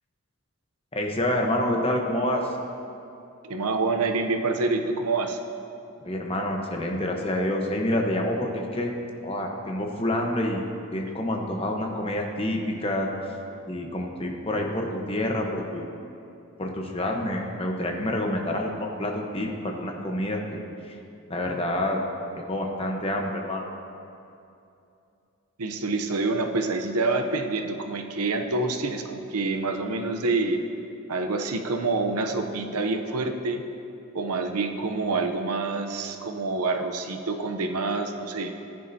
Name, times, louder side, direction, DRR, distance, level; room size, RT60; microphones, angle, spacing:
voice 1, 0.9-2.5 6.0-8.9 9.2-10.6 10.9-13.1 13.7-15.9 16.6-20.6 20.9-21.0 21.3-22.0 22.4-23.6, left 1 dB, 25° left, 1 dB, 1.0 m, -27 dB
voice 2, 3.4-5.4 25.6-30.6 31.1-33.6 34.1-38.5, right 3 dB, 90° right, 5 dB, 0.7 m, -27 dB
15.5 x 10.0 x 2.8 m, 2.7 s
head